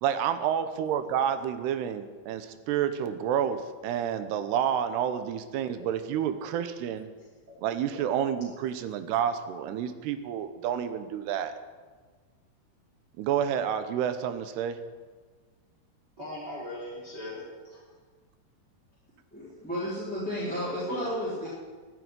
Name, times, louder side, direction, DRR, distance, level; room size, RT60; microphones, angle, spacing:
voice 1, 0.0-7.1 7.6-11.5 13.2-14.8, right 9 dB, 85° right, 10 dB, 3.1 m, -29 dB
voice 2, 16.2-17.8 20.9-21.1, left 1 dB, 25° right, -4 dB, 3.6 m, -39 dB
voice 3, 19.3-21.5, equal, ahead, -10 dB, 3.4 m, -32 dB
14.0 x 9.3 x 9.7 m, 1.4 s
omnidirectional pair, 4.6 m